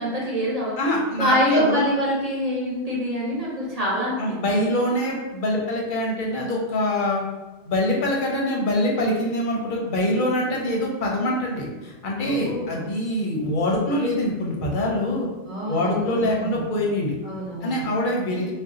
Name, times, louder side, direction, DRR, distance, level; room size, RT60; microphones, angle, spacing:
voice 1, 0.0-0.8 1.1-4.2 12.2-12.9 15.5-16.7 17.2-17.9, equal, 35° right, -6 dB, 1.0 m, -25 dB
voice 2, 0.8-1.8 4.2-7.2 7.7-15.3 15.7-17.1 17.6-18.5, left 1 dB, 50° left, -2 dB, 0.8 m, -24 dB
2.7 x 2.2 x 3.6 m, 1.2 s
omnidirectional pair, 1.2 m